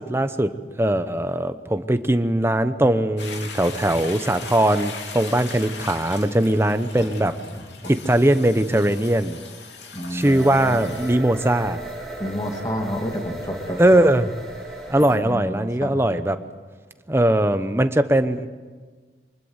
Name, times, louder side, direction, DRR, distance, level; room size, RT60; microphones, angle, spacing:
voice 1, 0.0-7.4 7.9-9.4 10.1-11.8 13.8-14.3 14.9-16.4 17.1-18.5, right 1 dB, 15° right, 10 dB, 0.9 m, -20 dB
Toilet flush, 3.2-11.1, left 4 dB, 85° left, 3.0 m, -39 dB
voice 2, 7.2-7.9 9.9-10.9 12.2-14.0 15.1-16.1, equal, 20° left, 2 dB, 2.6 m, -31 dB
sound 1, 10.2-15.1, right 1 dB, ahead, 4.6 m, -36 dB
24.5 x 20.5 x 8.1 m, 1.5 s
head